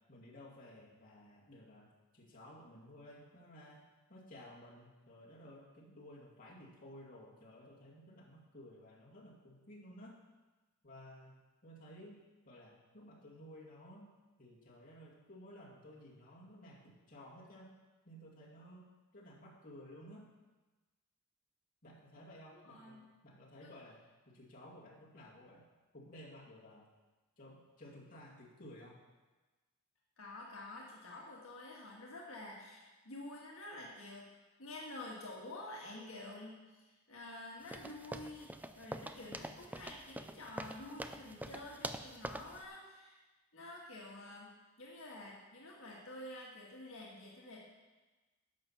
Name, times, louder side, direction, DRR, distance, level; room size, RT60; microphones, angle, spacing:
voice 1, 0.1-10.2 10.8-14.1 14.4-17.7 18.0-20.3 21.8-24.0 24.3-25.7 25.9-26.9 27.4-29.0, equal, 40° left, -5 dB, 2.3 m, -55 dB
voice 2, 22.5-23.1 23.6-23.7 30.2-34.3 34.6-43.2 43.5-47.7, left 2 dB, 70° left, -3 dB, 1.8 m, -49 dB
sound 1, 37.7-42.6, right 1 dB, 10° right, 0.4 m, -45 dB
10.5 x 6.8 x 5.9 m, 1.2 s
head